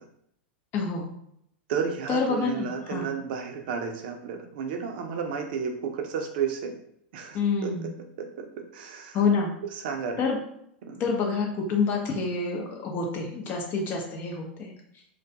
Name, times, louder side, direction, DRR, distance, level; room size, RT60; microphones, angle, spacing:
voice 1, 0.7-1.1 2.1-3.1 7.3-7.9 9.1-9.5 10.2-10.4 11.0-14.7, left 4 dB, 40° left, 0 dB, 0.7 m, -27 dB
voice 2, 1.7-6.7 7.1-7.9 8.2-9.2 9.7-10.2 10.9-11.0, right 6 dB, 65° right, 4 dB, 0.5 m, -32 dB
2.3 x 2.2 x 2.7 m, 0.73 s
hypercardioid pair, 110°, 6 cm